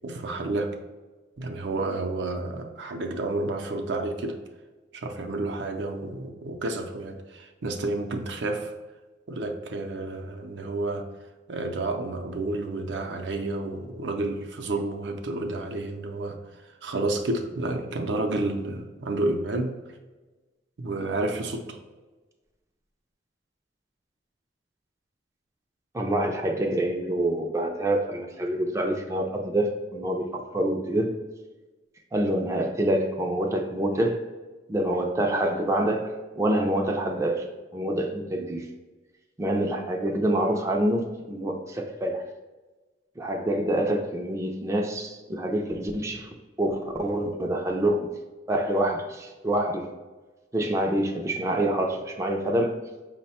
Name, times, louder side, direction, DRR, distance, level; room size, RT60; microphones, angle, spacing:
voice 1, 0.0-0.8 1.4-4.4 4.9-8.7 9.3-11.1 11.5-16.4 16.6-19.8 20.8-21.8, right 2 dB, 70° right, 4 dB, 0.5 m, -30 dB
voice 2, 25.9-31.2 32.1-34.2 34.7-37.4 37.7-38.7 39.4-42.2 43.2-46.3 46.6-48.1 48.5-49.9 50.5-52.8, right 1 dB, 15° right, 2 dB, 0.4 m, -26 dB
5.5 x 2.1 x 4.1 m, 1.2 s
head